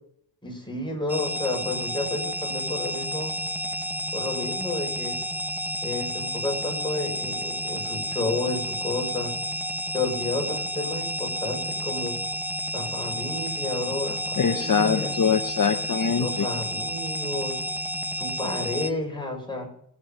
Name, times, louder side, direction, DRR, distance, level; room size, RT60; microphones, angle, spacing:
voice 1, 0.4-3.4 4.1-5.2 5.8-9.4 9.9-12.2 12.7-15.2 16.2-17.6 18.2-19.7, left 2 dB, 15° left, 0 dB, 6.2 m, -31 dB
sound 1, 1.1-18.9, equal, 5° right, 0.7 m, -31 dB
voice 2, 14.4-16.5, left 6 dB, 60° left, 7 dB, 0.9 m, -23 dB
23.0 x 8.4 x 5.4 m, 0.70 s
wide cardioid pair, 80°, 37 cm